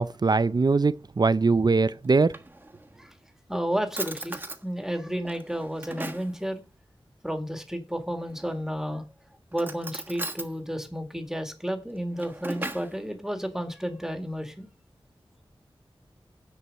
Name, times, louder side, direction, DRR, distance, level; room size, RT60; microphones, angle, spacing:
voice 1, 0.0-2.4, right 3 dB, 50° right, 0.5 m, -22 dB
Drawer open or close, 2.0-3.0 3.5-3.6 3.9-4.6 5.2-6.3 8.2-8.8 9.5-10.5 11.9-13.0, right 2 dB, 20° right, 1.3 m, -37 dB
voice 2, 3.5-6.6 7.2-9.0 9.5-14.7, equal, 5° right, 1.8 m, -32 dB
9.9 x 4.7 x 7.5 m
wide cardioid pair, 70°, 9 cm